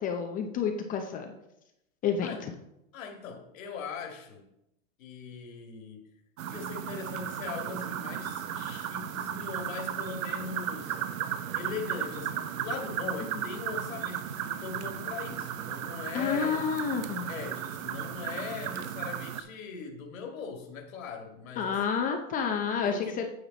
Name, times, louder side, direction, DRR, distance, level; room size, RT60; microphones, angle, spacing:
voice 1, 0.0-1.3 2.0-2.5 16.1-17.3 21.6-23.3, left 6 dB, 20° left, 4 dB, 0.7 m, -30 dB
voice 2, 2.9-4.5 5.0-6.1 6.5-16.7 17.3-22.1 22.8-23.3, left 6 dB, 80° left, 2 dB, 2.0 m, -40 dB
sound 1, 6.4-19.4, right 10 dB, 75° right, 0.9 m, -35 dB
9.1 x 8.0 x 4.0 m, 0.84 s
supercardioid pair, 145°, 40 cm